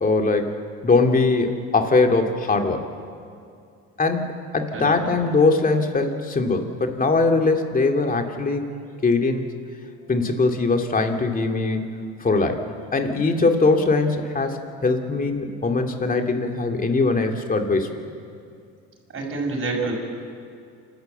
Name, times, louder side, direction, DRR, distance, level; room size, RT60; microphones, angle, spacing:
voice 1, 0.0-2.8 4.0-8.7 9.0-9.5 10.1-11.8 12.2-12.6 12.9-17.9, left 3 dB, 25° left, 4 dB, 2.4 m, -21 dB
voice 2, 19.1-19.9, right 3 dB, 35° right, 0 dB, 6.3 m, -27 dB
28.0 x 12.5 x 8.0 m, 2.4 s
supercardioid pair, 90°, 34 cm